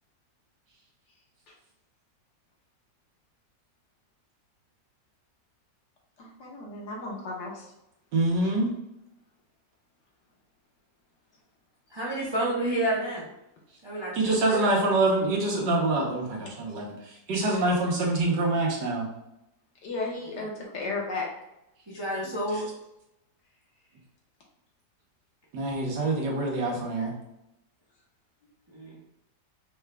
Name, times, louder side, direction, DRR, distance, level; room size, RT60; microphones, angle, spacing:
voice 1, 6.2-7.7 19.8-21.3, left 3 dB, 70° left, -2 dB, 1.7 m, -34 dB
voice 2, 8.1-8.7 14.1-19.1 22.5-22.6 25.5-27.1, right 2 dB, 75° right, -3 dB, 1.5 m, -25 dB
voice 3, 11.9-13.2 13.8-14.7 21.9-22.7 28.7-29.0, right 1 dB, 25° right, -6 dB, 0.5 m, -30 dB
5.4 x 2.3 x 3.3 m, 0.85 s
omnidirectional pair, 1.9 m